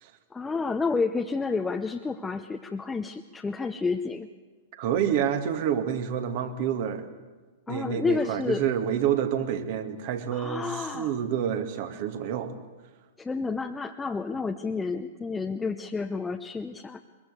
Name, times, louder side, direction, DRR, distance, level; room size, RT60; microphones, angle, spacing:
voice 1, 0.3-4.3 7.7-8.6 10.3-11.1 13.2-17.0, left 4 dB, 10° left, 4 dB, 0.9 m, -30 dB
voice 2, 4.8-7.1 7.7-12.6, right 9 dB, 50° right, 8 dB, 2.1 m, -28 dB
22.5 x 21.5 x 8.3 m, 1.3 s
figure-of-eight pair, 105°, 0 cm